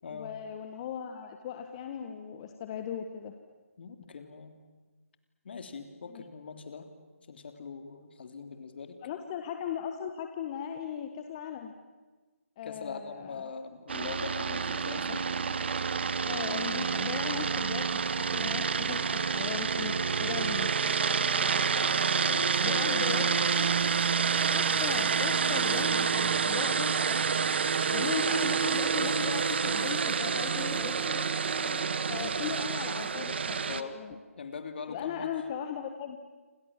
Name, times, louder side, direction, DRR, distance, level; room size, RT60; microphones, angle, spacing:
voice 1, 0.1-3.3 6.1-6.2 9.0-11.7 12.6-13.5 16.2-20.7 22.6-23.6 24.5-27.2 27.9-31.3 32.1-34.2 34.9-36.2, left 8 dB, 25° left, 6 dB, 1.4 m, -38 dB
voice 2, 3.8-4.6 5.4-6.9 7.3-9.0 12.6-15.3 21.2-21.3 22.2-23.3 31.6-32.0 33.7-34.0 34.4-35.3, left 5 dB, 45° left, 7 dB, 3.3 m, -41 dB
sound 1, 13.9-33.8, right 6 dB, 50° right, 1.4 m, -28 dB
28.0 x 26.5 x 7.5 m, 1.3 s
figure-of-eight pair, 155°, 8 cm